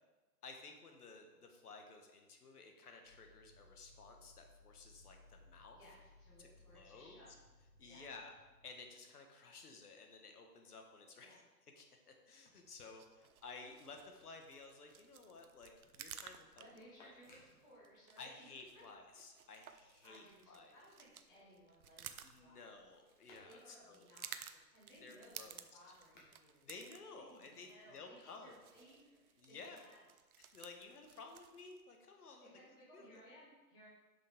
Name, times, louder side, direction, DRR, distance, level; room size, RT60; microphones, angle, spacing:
voice 1, 0.4-5.8 6.4-7.2 7.8-8.3 8.6-11.4 11.8-16.6 17.0-17.1 18.2-20.7 22.2-24.1 25.0-25.6 26.6-28.6 29.4-29.8 30.4-33.2, left 4 dB, 65° left, 3 dB, 1.4 m, -55 dB
sound 1, 3.0-8.8, left 2 dB, 20° right, 0.8 m, -64 dB
voice 2, 5.7-7.4 7.7-8.1 11.2-11.4 16.6-18.8 20.0-22.7 23.4-26.7 27.2-30.3 32.4-33.9, equal, 5° left, -8 dB, 1.2 m, -62 dB
sound 2, 12.3-19.1 19.5-27.6 28.5-29.3, left 2 dB, 30° left, 1.5 m, -72 dB
sound 3, 12.7-31.8, right 8 dB, 60° right, 0.7 m, -56 dB
9.3 x 5.4 x 3.6 m, 1.2 s
hypercardioid pair, 165°, 49 cm